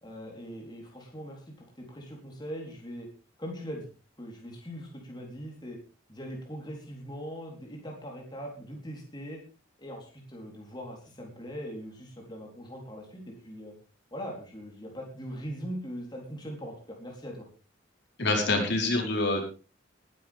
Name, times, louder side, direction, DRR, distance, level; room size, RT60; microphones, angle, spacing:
voice 1, 0.0-3.1 3.4-3.9 4.2-5.8 6.1-9.4 9.8-13.7 14.1-17.5, equal, 20° left, -1 dB, 3.9 m, -41 dB
voice 2, 18.2-19.4, left 2 dB, 60° left, 1 dB, 4.5 m, -26 dB
20.5 x 11.0 x 3.6 m, 0.35 s
head